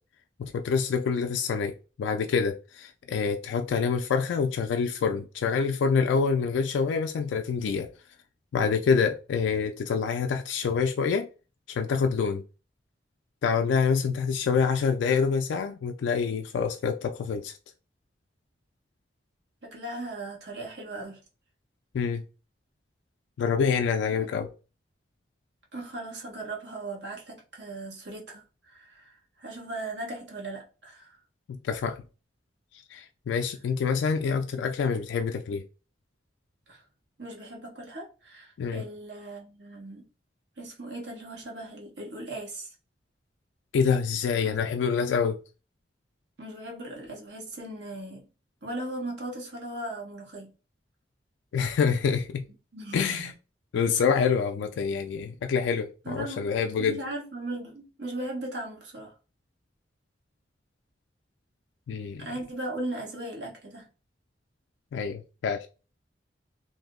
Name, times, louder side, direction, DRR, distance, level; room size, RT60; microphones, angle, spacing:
voice 1, 0.4-1.7 2.0-7.9 8.5-11.3 11.7-12.4 13.4-17.6 21.9-22.2 23.4-24.5 31.5-32.0 32.9-35.6 38.6-38.8 43.7-45.4 51.5-52.4 52.9-53.3 53.7-57.0 61.9-62.3 64.9-65.7, left 6 dB, 85° left, 0.3 m, -26 dB
voice 2, 19.6-21.2 24.1-24.4 25.7-31.2 36.7-36.8 37.2-40.1 40.6-42.7 44.4-44.5 46.4-48.3 48.6-50.5 52.7-53.3 56.0-56.5 56.8-59.1 62.2-63.9, right 1 dB, 70° right, 1.0 m, -38 dB
2.6 x 2.0 x 3.5 m
head